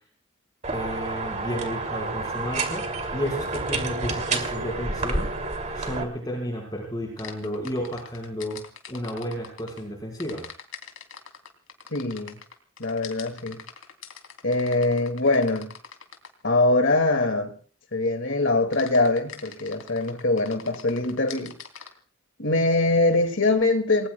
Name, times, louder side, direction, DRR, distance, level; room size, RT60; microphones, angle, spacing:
sound 1, 0.6-6.0, right 3 dB, 35° right, 2.8 m, -29 dB
voice 1, 0.7-5.3 5.7-8.6 8.9-10.4, equal, 20° left, 4.9 m, -32 dB
sound 2, 7.2-9.8 10.2-16.4 18.7-21.9, left 7 dB, 85° left, 3.2 m, -42 dB
voice 2, 11.9-12.4 12.8-13.6 14.4-15.7 16.4-17.6 17.9-21.6 22.4-24.1, left 2 dB, 60° left, 2.3 m, -23 dB
29.0 x 21.0 x 2.3 m
head